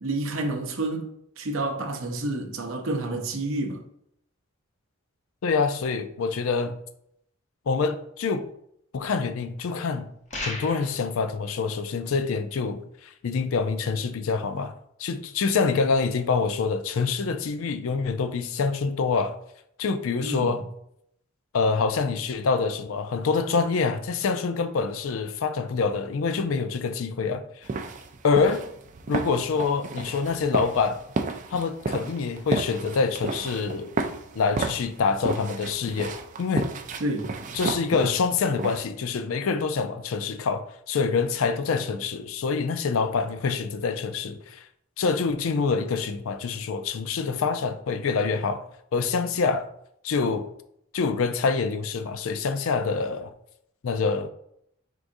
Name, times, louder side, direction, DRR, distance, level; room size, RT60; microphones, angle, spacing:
voice 1, 0.0-3.8 20.2-20.5 37.0-37.3, right 2 dB, 70° right, 0.6 m, -29 dB
voice 2, 5.4-6.8 7.7-8.5 8.9-10.1 10.5-14.7 15.0-19.3 19.8-20.6 21.5-27.5 28.2-28.6 29.1-31.0 31.5-33.9 34.3-36.7 37.5-44.6 45.0-48.6 48.9-49.7 50.0-50.5 50.9-53.3 53.8-54.3, left 4 dB, 75° left, 0.4 m, -26 dB
sound 1, 10.3-11.0, left 2 dB, 30° left, 0.8 m, -34 dB
sound 2, 27.6-38.8, right 3 dB, 35° right, 0.3 m, -32 dB
4.7 x 3.8 x 2.6 m
head